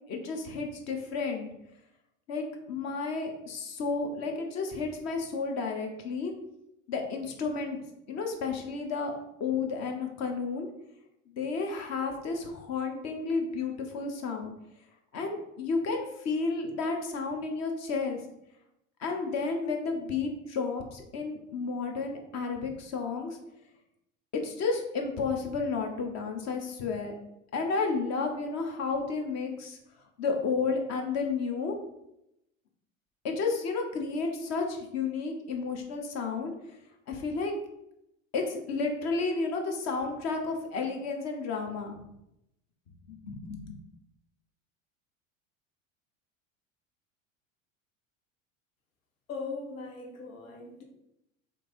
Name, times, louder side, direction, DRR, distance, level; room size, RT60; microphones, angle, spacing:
voice 1, 0.0-1.5 2.3-6.3 6.9-7.8 8.1-9.1 9.4-10.7 11.3-14.5 15.1-18.2 19.0-23.4 24.4-27.1 27.5-29.8 30.2-31.7 33.2-36.5 37.1-37.5 38.3-42.0 43.1-43.8, left 4 dB, 40° left, 3 dB, 0.8 m, -32 dB
voice 2, 49.3-50.8, left 4 dB, 80° left, 1 dB, 1.0 m, -39 dB
3.1 x 2.6 x 4.2 m, 0.83 s
hypercardioid pair, 75°, 40 cm